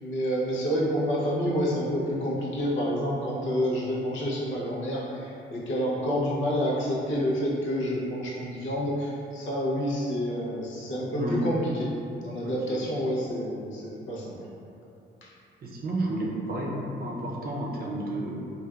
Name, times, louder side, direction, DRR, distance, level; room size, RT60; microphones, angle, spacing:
voice 1, 0.0-11.9 12.2-14.4 15.2-15.3, equal, 75° left, -4 dB, 0.7 m, -28 dB
voice 2, 12.4-12.8 15.6-18.4, right 1 dB, 50° right, -3 dB, 0.6 m, -32 dB
3.2 x 2.4 x 2.3 m, 2.6 s
cardioid pair, 90°, 20 cm